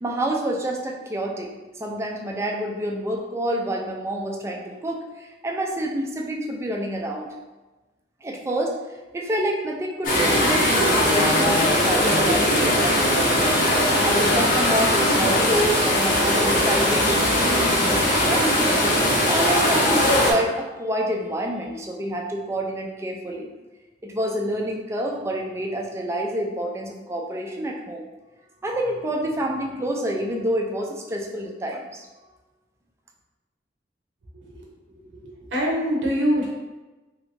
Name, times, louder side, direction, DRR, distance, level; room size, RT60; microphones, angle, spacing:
voice 1, 0.0-7.3 8.2-8.8 9.1-13.5 14.0-18.8 19.3-23.5 24.0-28.1 28.6-32.1, right 1 dB, 15° right, 0 dB, 0.4 m, -28 dB
sound 1, 10.0-20.3, left 1 dB, 50° left, 0.8 m, -20 dB
voice 2, 35.2-36.5, equal, 85° right, -3 dB, 0.7 m, -23 dB
3.1 x 2.5 x 3.1 m, 1.2 s
head